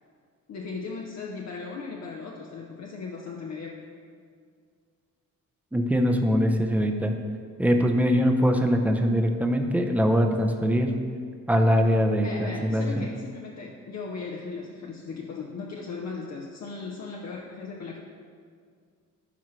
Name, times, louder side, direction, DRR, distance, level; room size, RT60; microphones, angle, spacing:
voice 1, 0.5-3.8 12.2-18.0, left 4 dB, 55° left, -1 dB, 0.8 m, -37 dB
voice 2, 5.7-7.1 7.6-10.9 11.5-13.1, equal, 5° right, 4 dB, 0.7 m, -22 dB
12.0 x 4.7 x 3.2 m, 2.1 s
cardioid pair, 80°, 31 cm